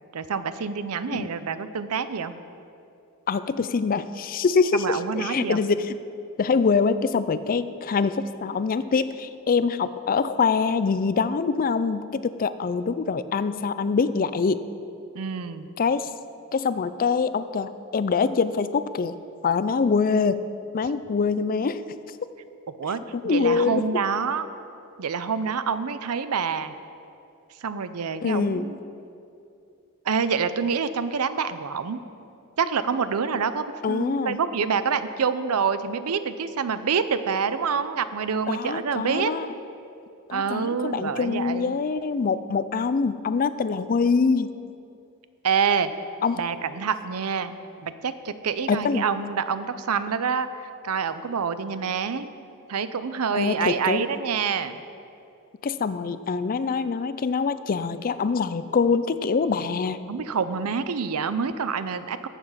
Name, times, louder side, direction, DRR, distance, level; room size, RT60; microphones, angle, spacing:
voice 1, 0.1-2.3 4.7-5.6 15.1-15.7 22.7-24.5 25.0-26.7 27.6-28.8 30.1-32.0 32.6-39.3 40.3-41.8 45.4-45.9 46.4-52.3 52.7-54.8 60.1-62.3, right 6 dB, 75° right, 12 dB, 0.6 m, -27 dB
voice 2, 3.3-6.0 6.4-14.6 15.8-16.1 16.5-19.2 19.4-20.4 20.7-21.8 23.1-23.8 28.2-28.7 33.8-34.4 38.5-39.5 40.3-44.5 46.2-46.4 48.7-49.1 53.3-54.0 55.6-60.0, left 5 dB, 40° left, 13 dB, 0.4 m, -24 dB
14.0 x 7.2 x 5.6 m, 2.6 s
head